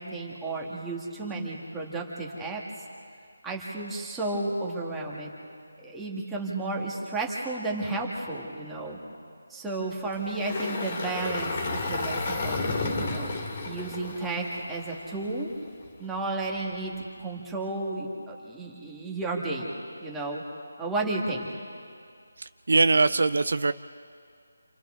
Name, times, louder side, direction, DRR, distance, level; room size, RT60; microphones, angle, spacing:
voice 1, 0.0-2.6 3.4-5.3 5.8-9.0 9.5-13.3 13.7-15.5 16.0-16.9 17.2-19.7 20.0-20.4 20.8-21.5, right 2 dB, 5° right, -3 dB, 1.7 m, -32 dB
Engine, 10.1-15.4, left 3 dB, 30° left, 2.5 m, -32 dB
voice 2, 22.4-23.7, right 3 dB, 60° right, 12 dB, 0.5 m, -22 dB
29.5 x 27.5 x 3.8 m, 2.2 s
figure-of-eight pair, 175°, 0 cm